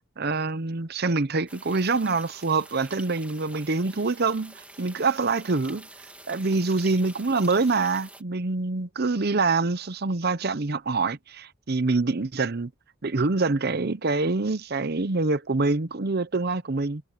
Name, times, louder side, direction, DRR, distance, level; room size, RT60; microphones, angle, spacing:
voice 1, 0.2-5.9 6.3-12.7 13.0-17.0, right 3 dB, 50° right, 0.8 m, -25 dB
sound 1, 1.5-8.2, right 2 dB, 5° right, 2.3 m, -47 dB
head